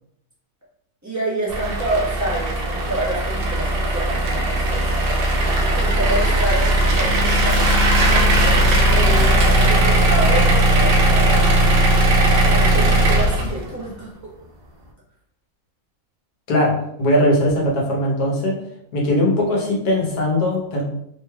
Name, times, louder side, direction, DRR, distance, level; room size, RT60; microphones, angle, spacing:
voice 1, 1.0-5.3 5.7-11.7 12.3-14.1, right 1 dB, 15° right, -7 dB, 0.9 m, -28 dB
sound 1, 1.5-13.8, right 1 dB, 70° right, 0.5 m, -17 dB
voice 2, 16.5-18.6 18.9-20.8, left 1 dB, 80° left, -3 dB, 1.4 m, -19 dB
3.6 x 3.1 x 2.3 m, 0.75 s
omnidirectional pair, 1.6 m